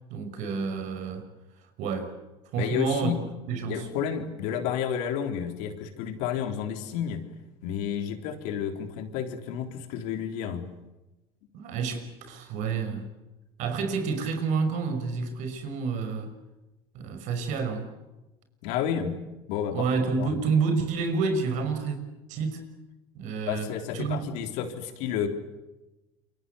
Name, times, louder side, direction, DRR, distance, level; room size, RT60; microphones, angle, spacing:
voice 1, 0.1-1.2 1.8-2.1 2.5-3.1 3.5-3.9 11.5-13.0 13.6-16.3 16.9-17.9 19.7-22.0 22.3-22.6 23.1-23.7 23.9-24.4, right 4 dB, 65° right, 5.9 m, -29 dB
voice 2, 2.6-3.2 3.7-7.2 7.6-10.6 18.6-19.2 19.5-19.9 20.2-20.4 23.5-25.3, left 8 dB, 75° left, 3.9 m, -31 dB
27.5 x 25.0 x 8.1 m
supercardioid pair, 95°, 13 cm